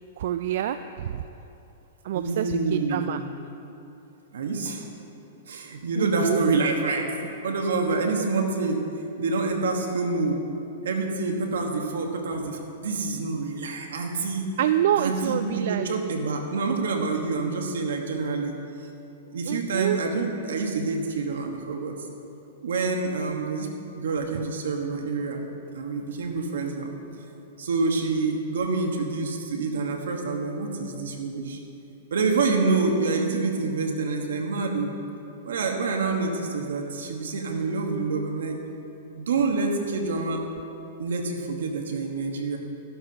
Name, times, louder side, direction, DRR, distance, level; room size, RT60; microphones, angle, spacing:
voice 1, 0.2-1.2 2.0-3.2 6.0-6.4 14.6-15.9 19.5-20.0, right 10 dB, 65° right, 10 dB, 0.3 m, -27 dB
voice 2, 2.1-3.1 4.3-5.0 5.5-8.9 9.2-10.4 10.8-14.5 15.0-18.6 19.3-21.9 22.6-23.7 23.9-25.5 25.7-27.0 27.6-31.6 32.1-34.9 35.5-38.6 39.2-40.4 41.0-42.6, right 3 dB, 85° right, 3 dB, 1.4 m, -27 dB
14.0 x 11.5 x 2.9 m, 2.9 s
hypercardioid pair, 145°, 0 cm